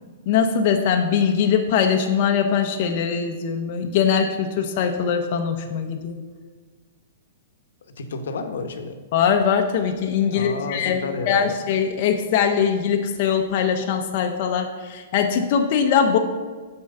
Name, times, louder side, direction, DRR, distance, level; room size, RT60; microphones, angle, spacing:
voice 1, 0.3-6.2 9.1-16.2, left 7 dB, 40° left, 3 dB, 0.6 m, -21 dB
voice 2, 8.0-9.0 10.3-11.6, left 3 dB, 80° left, 6 dB, 0.9 m, -30 dB
7.0 x 4.4 x 6.6 m, 1.4 s
hypercardioid pair, 165°, 0 cm